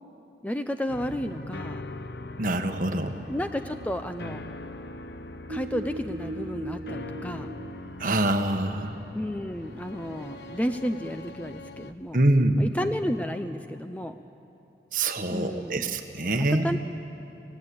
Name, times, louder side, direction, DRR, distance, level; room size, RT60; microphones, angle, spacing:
voice 1, 0.4-1.8 3.3-4.4 5.5-7.5 9.1-12.2 12.5-14.2 15.3-15.9 16.5-16.8, equal, 10° left, 8 dB, 0.5 m, -32 dB
sound 1, 0.9-11.9, left 2 dB, 65° left, 0.8 m, -41 dB
voice 2, 2.4-3.2 8.0-9.0 12.1-12.7 14.9-16.8, right 1 dB, 50° right, 6 dB, 1.3 m, -25 dB
sound 2, 5.5-8.4 9.4-10.6, right 2 dB, 90° right, 1.0 m, -40 dB
26.5 x 16.5 x 8.6 m, 2.8 s
head